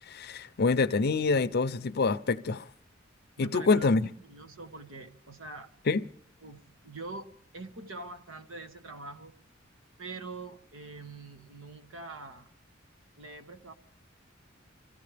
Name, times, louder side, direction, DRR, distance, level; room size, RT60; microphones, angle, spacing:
voice 1, 0.1-2.6 3.4-4.1 5.9-6.0, left 4 dB, 55° left, 0.6 m, -26 dB
voice 2, 3.4-5.7 6.4-7.3 7.5-9.3 10.0-12.5 13.2-13.7, right 3 dB, 80° right, 1.3 m, -44 dB
25.0 x 15.0 x 3.4 m
head